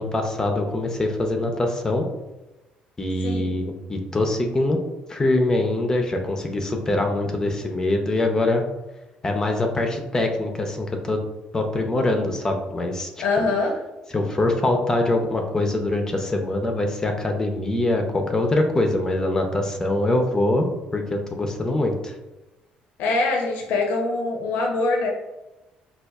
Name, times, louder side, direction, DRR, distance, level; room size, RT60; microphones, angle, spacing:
voice 1, 0.0-2.1 3.0-4.8 5.1-8.6 9.2-11.2 11.5-13.1 13.4-13.5 14.1-20.7 20.9-22.1, left 2 dB, 20° left, 4 dB, 0.4 m, -23 dB
voice 2, 3.2-3.6 13.2-13.8 23.0-25.1, left 3 dB, 80° left, 1 dB, 0.6 m, -23 dB
4.3 x 2.3 x 2.3 m, 1.0 s
cardioid pair, 130°, 3 cm